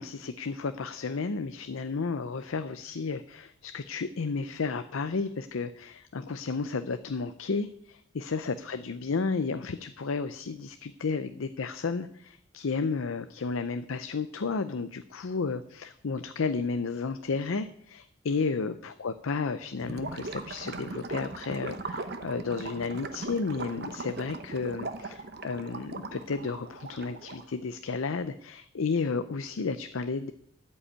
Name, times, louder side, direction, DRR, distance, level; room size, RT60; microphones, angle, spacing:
voice 1, 0.0-30.3, left 4 dB, 90° left, 11 dB, 0.6 m, -32 dB
Gurgling / Liquid, 19.8-27.5, right 3 dB, 50° right, 0.9 m, -39 dB
12.5 x 5.5 x 8.7 m, 0.70 s
head